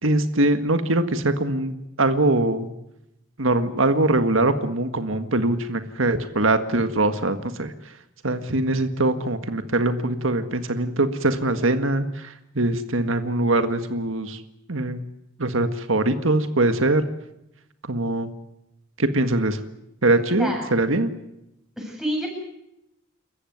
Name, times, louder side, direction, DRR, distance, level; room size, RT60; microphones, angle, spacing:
voice 1, 0.0-2.7 3.4-7.7 8.2-14.4 14.7-15.0 15.4-17.0 17.8-18.3 19.0-19.6 20.0-21.1, right 2 dB, 85° right, 9 dB, 1.7 m, -22 dB
voice 2, 20.3-20.6 21.8-22.3, equal, ahead, 0 dB, 7.4 m, -28 dB
28.5 x 15.0 x 9.5 m, 0.84 s
head